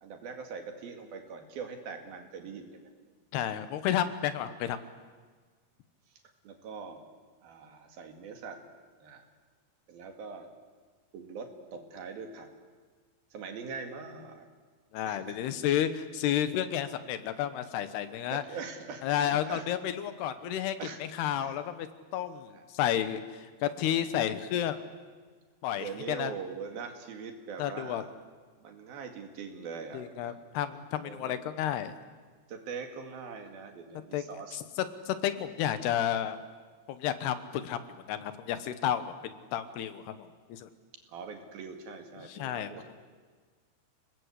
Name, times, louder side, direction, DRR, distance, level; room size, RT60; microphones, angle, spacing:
voice 1, 0.0-2.9 6.4-7.0 7.4-8.6 9.0-9.3 9.9-10.5 11.1-12.5 13.3-14.5 15.1-15.4 18.1-19.6 20.8-21.6 22.5-22.6 25.8-28.1 28.6-30.4 30.7-30.8 31.0-31.4 32.5-34.6 41.1-42.8, right 5 dB, 65° right, 4 dB, 3.9 m, -42 dB
voice 2, 3.3-4.8 14.9-18.4 19.0-20.8 21.0-21.9 22.1-24.8 25.6-26.4 27.6-28.0 29.9-31.9 34.1-34.2 34.5-34.6 35.1-36.4 36.9-37.8 38.1-40.7 42.2-43.0, left 10 dB, 80° left, 11 dB, 3.2 m, -31 dB
29.0 x 19.5 x 8.3 m, 1.5 s
omnidirectional pair, 4.7 m